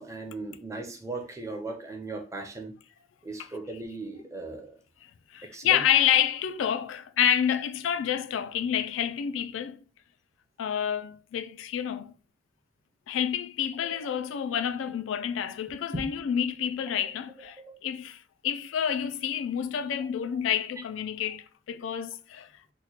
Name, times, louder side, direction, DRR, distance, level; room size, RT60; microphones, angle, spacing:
voice 1, 0.0-2.7 3.2-4.8 5.4-5.9 15.9-16.1 17.7-17.8, right 2 dB, 15° right, 0.5 m, -37 dB
voice 2, 5.3-9.8 10.6-12.1 13.1-22.5, left 9 dB, 90° left, 0.3 m, -28 dB
3.0 x 2.1 x 3.8 m
head